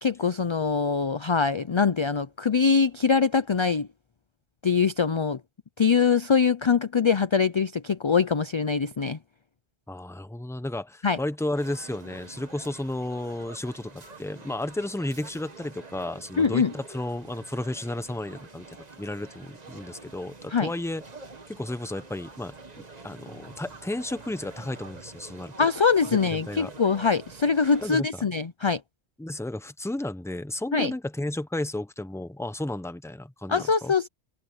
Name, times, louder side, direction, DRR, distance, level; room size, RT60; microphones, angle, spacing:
voice 1, 0.0-3.9 4.6-5.4 5.8-9.2 11.0-11.2 16.4-16.7 20.5-20.7 25.6-28.8 30.7-30.9 33.5-34.1, left 5 dB, 40° left, 0.4 m, -23 dB
voice 2, 9.9-21.0 21.5-22.5 23.0-25.7 26.1-26.7 27.8-28.1 29.2-33.9, left 1 dB, 5° left, 0.8 m, -33 dB
sound 1, 11.5-27.9, right 3 dB, 35° right, 1.5 m, -47 dB
omnidirectional pair, 1.2 m